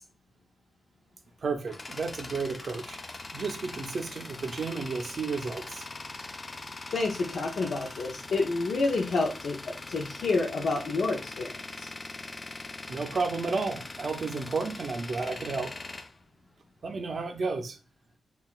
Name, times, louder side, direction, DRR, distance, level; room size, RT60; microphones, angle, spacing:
Tools, 1.2-17.0, left 3 dB, 30° left, 0.3 m, -42 dB
voice 1, 1.4-5.9 12.9-15.7 16.8-17.8, right 4 dB, 50° right, 5 dB, 0.5 m, -32 dB
voice 2, 6.9-11.9, left 3 dB, 75° left, -1 dB, 0.6 m, -29 dB
5.4 x 2.3 x 2.4 m, 0.32 s
wide cardioid pair, 105°, 0 cm